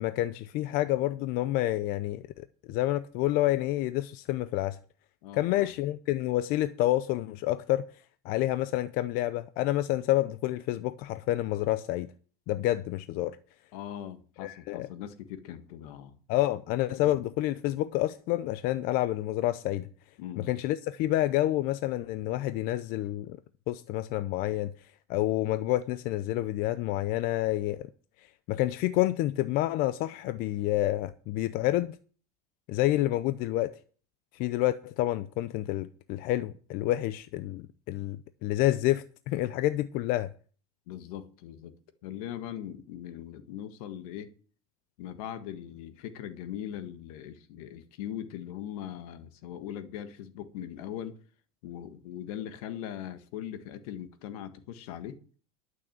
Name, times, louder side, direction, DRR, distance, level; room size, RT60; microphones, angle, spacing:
voice 1, 0.0-4.8 5.3-7.9 8.2-12.1 12.5-13.4 14.4-14.9 16.3-19.9 20.4-23.4 23.7-24.7 25.1-27.9 28.5-32.0 32.7-33.7 34.4-40.3, left 15 dB, 50° left, 0.6 m, -28 dB
voice 2, 5.2-5.7 13.7-16.2 16.9-17.2 20.2-20.5 40.9-41.7 42.0-44.3 45.0-51.2 51.6-55.2, left 10 dB, 70° left, 1.6 m, -40 dB
12.0 x 6.4 x 7.4 m
supercardioid pair, 135°, 20 cm